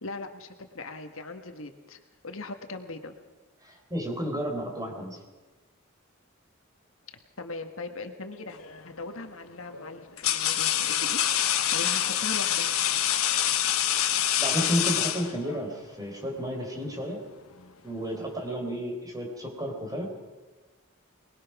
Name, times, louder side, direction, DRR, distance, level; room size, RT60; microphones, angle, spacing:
voice 1, 0.0-3.1 7.4-8.6 8.8-11.2 11.7-12.7, left 3 dB, 70° left, 6 dB, 1.6 m, -39 dB
voice 2, 3.6-5.2 13.9-14.1 14.4-17.2 17.8-20.1, equal, 20° right, 1 dB, 4.5 m, -32 dB
sound 1, 8.6-8.9 9.7-15.7, left 11 dB, 85° left, 1.3 m, -26 dB
24.5 x 20.0 x 6.0 m, 1.2 s
head